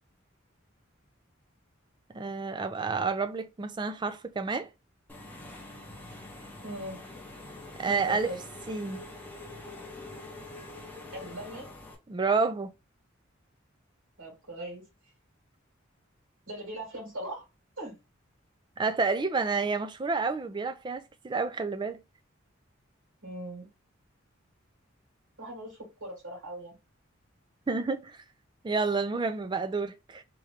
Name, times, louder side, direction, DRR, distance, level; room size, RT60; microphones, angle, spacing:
voice 1, 2.1-4.7 7.8-8.3 8.7-9.0 12.1-12.7 18.8-22.0 27.7-28.2 28.6-30.2, right 4 dB, 25° right, 0.4 m, -29 dB
Engine / Mechanisms, 5.1-12.0, left 2 dB, 10° left, 0.7 m, -45 dB
voice 2, 6.6-7.1 7.9-8.4 11.1-11.7 14.2-14.8 16.5-17.5 17.8-18.0 23.2-23.7 25.4-26.8, right 1 dB, 75° right, 2.4 m, -40 dB
3.7 x 2.8 x 3.2 m
head